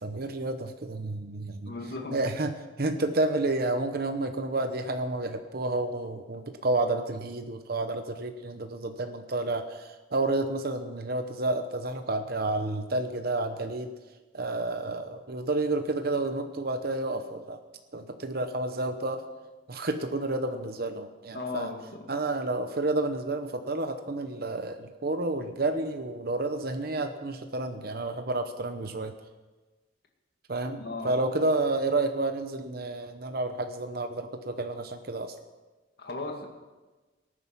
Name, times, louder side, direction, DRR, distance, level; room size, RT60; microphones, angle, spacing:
voice 1, 0.0-1.7 2.1-2.5 2.8-13.9 14.3-17.6 17.9-19.2 19.7-21.7 22.1-29.1 30.5-35.3, right 2 dB, 55° right, 7 dB, 0.9 m, -30 dB
voice 2, 1.7-2.2 21.3-22.1 30.8-31.1 36.0-36.5, left 3 dB, 60° left, 1 dB, 2.2 m, -36 dB
18.5 x 9.7 x 6.1 m, 1.2 s
head